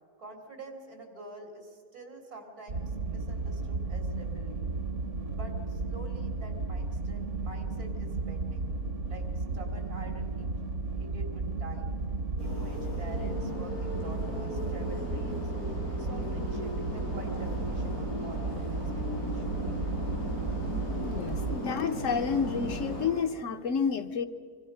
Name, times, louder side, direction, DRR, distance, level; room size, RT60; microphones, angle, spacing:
voice 1, 0.2-4.8 5.3-8.7 9.1-10.5 10.9-12.0 12.3-15.5 15.9-19.7, right 2 dB, 85° right, 3.9 m, -47 dB
sound 1, 2.7-21.6, right 3 dB, 55° right, 1.4 m, -34 dB
sound 2, 12.4-23.1, equal, 90° left, 8.1 m, -36 dB
voice 2, 21.0-24.2, left 6 dB, 60° left, 1.2 m, -30 dB
26.0 x 24.0 x 5.7 m
omnidirectional pair, 1.5 m